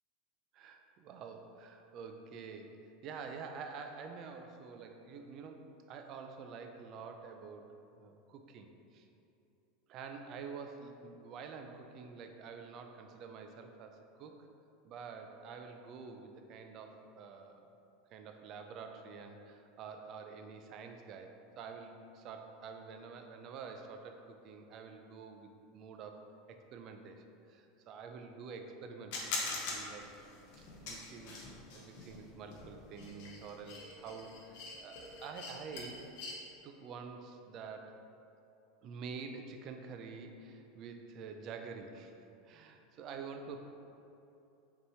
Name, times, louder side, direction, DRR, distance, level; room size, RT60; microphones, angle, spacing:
voice 1, 0.5-7.7 8.0-9.1 9.9-14.3 14.8-17.7 18.1-29.2 29.7-30.1 30.6-31.4 31.7-36.0 36.6-38.0 38.8-42.1 42.4-43.6, right 5 dB, 45° right, 5 dB, 0.4 m, -48 dB
sound 1, 29.1-36.3, left 3 dB, 65° left, 0.8 m, -43 dB
5.4 x 3.0 x 2.8 m, 2.8 s
supercardioid pair, 125°, 0 cm